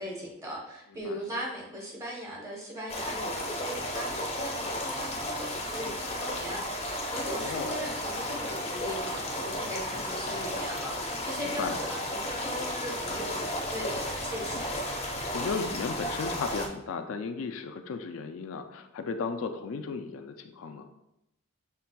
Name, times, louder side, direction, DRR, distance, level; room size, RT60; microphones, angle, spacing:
voice 1, 0.0-14.7, equal, 15° right, -3 dB, 0.9 m, -39 dB
sound 1, 2.9-16.7, left 1 dB, 30° left, 0.6 m, -33 dB
voice 2, 7.4-7.8 11.4-11.8 15.3-20.9, left 4 dB, 70° left, 6 dB, 0.3 m, -35 dB
5.8 x 3.3 x 2.2 m, 0.85 s
head